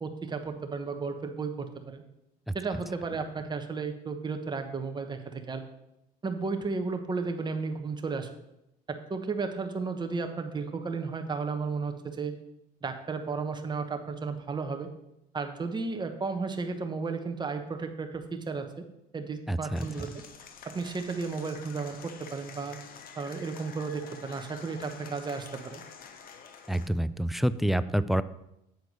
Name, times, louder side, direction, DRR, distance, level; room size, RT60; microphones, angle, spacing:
voice 1, 0.0-2.0 2.5-5.6 6.2-8.3 8.9-12.3 12.8-14.9 15.3-18.8 19.1-20.1 20.6-22.8 23.2-25.8, right 4 dB, 25° right, 5 dB, 1.1 m, -33 dB
voice 2, 19.5-19.8 26.7-28.2, right 1 dB, ahead, 15 dB, 0.3 m, -27 dB
Applause / Crowd, 19.7-26.9, left 6 dB, 50° left, 1.0 m, -48 dB
8.0 x 4.5 x 6.7 m, 0.85 s
supercardioid pair, 85°, 18 cm